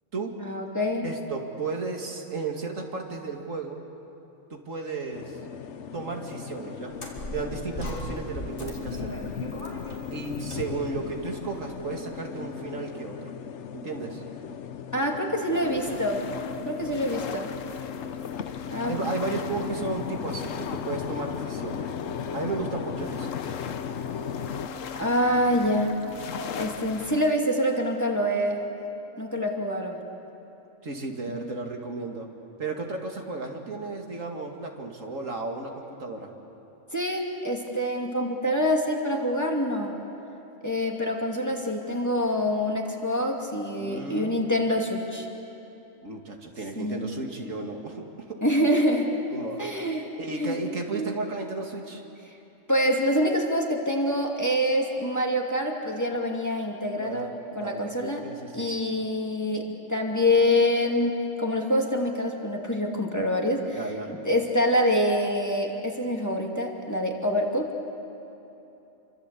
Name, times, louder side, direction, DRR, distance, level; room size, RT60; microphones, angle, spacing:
voice 1, 0.4-1.1 14.9-16.2 16.7-17.5 18.7-19.1 25.0-26.0 26.5-28.6 29.2-30.0 31.3-31.5 36.9-40.0 40.6-45.3 46.8-47.1 48.4-49.1 49.6-50.1 50.4-50.6 50.9-51.2 52.7-57.3 57.5-58.2 58.5-63.8 64.2-67.7, equal, 15° left, 0 dB, 2.6 m, -26 dB
voice 2, 1.0-3.8 4.5-5.4 5.9-6.9 7.3-9.2 10.1-13.3 13.7-14.2 18.8-21.9 22.3-23.5 30.8-32.3 32.6-36.3 43.8-44.3 46.0-48.4 49.3-49.7 50.2-52.0 57.0-58.0 58.2-58.7 63.7-64.1, right 3 dB, 85° right, 2 dB, 2.7 m, -34 dB
sound 1, 5.1-24.7, left 7 dB, 65° left, 1.1 m, -37 dB
sound 2, 6.9-12.2, left 1 dB, 45° left, 3.7 m, -38 dB
sound 3, 15.5-27.3, left 7 dB, 85° left, 1.3 m, -39 dB
28.0 x 25.0 x 8.4 m, 2.9 s
omnidirectional pair, 1.3 m